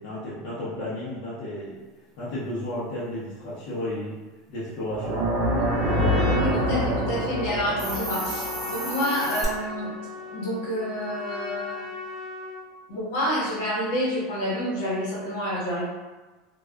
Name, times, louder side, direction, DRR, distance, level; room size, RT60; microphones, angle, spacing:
voice 1, 0.0-1.8 2.2-4.2 4.5-5.2, left 1 dB, 55° left, -10 dB, 0.8 m, -33 dB
sound 1, 4.8-10.0, equal, 60° right, 0.6 m, -26 dB
Trumpet, 5.4-12.7, left 3 dB, 10° left, 0.9 m, -38 dB
voice 2, 6.3-9.9 10.3-11.8 12.9-15.9, equal, 75° left, -7 dB, 1.1 m, -28 dB
Hiss, 7.6-9.5, right 1 dB, 15° right, 0.6 m, -33 dB
2.4 x 2.3 x 2.2 m, 1.2 s
supercardioid pair, 120°, 0 cm